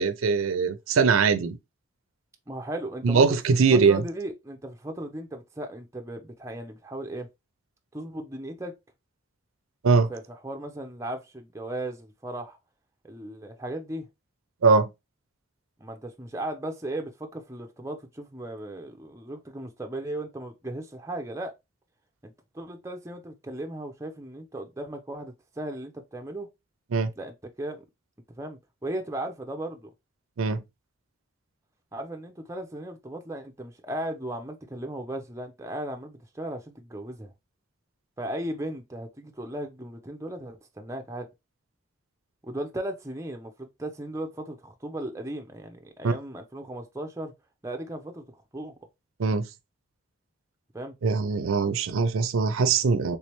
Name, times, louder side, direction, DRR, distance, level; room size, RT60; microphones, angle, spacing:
voice 1, 0.0-1.6 3.0-4.0 9.8-10.1 14.6-14.9 26.9-27.1 30.4-30.6 46.0-46.1 49.2-49.5 51.0-53.2, right 5 dB, 80° right, 0.4 m, -21 dB
voice 2, 2.5-7.3 7.9-8.7 10.1-12.6 13.0-14.1 15.8-21.5 22.2-26.5 27.2-27.8 28.4-29.9 31.9-37.3 38.2-41.3 42.4-47.3 47.6-48.8 50.7-50.9, right 1 dB, 15° right, 0.5 m, -36 dB
3.4 x 3.2 x 2.9 m
head